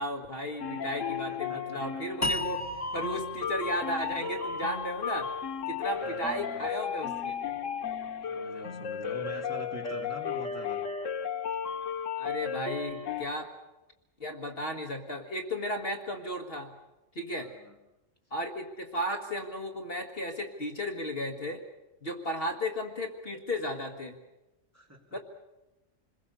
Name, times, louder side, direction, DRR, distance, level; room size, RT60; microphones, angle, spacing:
voice 1, 0.0-2.6 2.9-5.3 5.7-7.4 12.2-13.5 14.2-16.7 17.1-17.5 18.3-21.6 22.0-24.2 25.1-25.2, equal, 50° left, 3 dB, 1.8 m, -34 dB
sound 1, 0.6-13.2, left 7 dB, 90° left, 1.4 m, -34 dB
voice 2, 1.3-1.8 5.9-6.7 8.3-10.8 17.4-17.8 24.7-25.2, equal, 10° right, -1 dB, 3.0 m, -44 dB
sound 2, 2.2-5.4, left 1 dB, 15° left, 1.0 m, -36 dB
28.0 x 21.0 x 6.8 m, 1.0 s
omnidirectional pair, 1.3 m